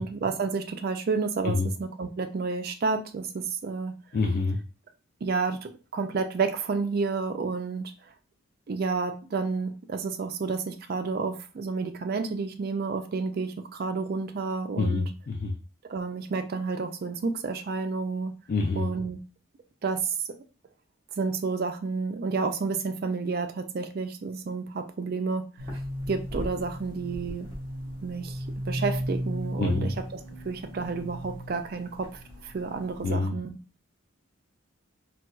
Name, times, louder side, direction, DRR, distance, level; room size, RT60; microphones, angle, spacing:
voice 1, 0.0-3.9 5.2-7.9 8.7-15.1 15.9-18.3 18.7-19.2 19.8-20.1 21.2-25.4 26.1-27.5 28.0-30.2 30.4-32.1 32.4-33.6, right 4 dB, 45° right, 7 dB, 0.3 m, -30 dB
voice 2, 4.1-4.6 14.8-15.5 18.5-18.9 29.6-29.9 33.0-33.4, left 3 dB, 45° left, 2 dB, 0.3 m, -26 dB
sound 1, 25.6-33.1, equal, 30° right, 1.3 m, -35 dB
4.0 x 2.3 x 2.3 m, 0.35 s
head